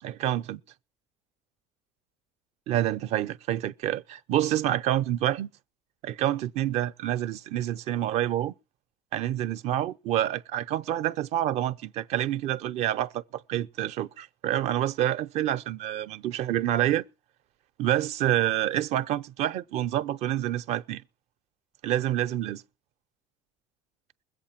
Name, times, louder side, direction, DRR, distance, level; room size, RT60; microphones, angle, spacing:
voice 1, 0.0-0.6 2.7-5.5 6.0-8.5 9.1-13.2 13.5-17.0 17.8-21.0 21.8-22.6, right 12 dB, 45° right, 0.7 m, -27 dB
21.5 x 8.2 x 5.8 m
cardioid pair, 160°, 15 cm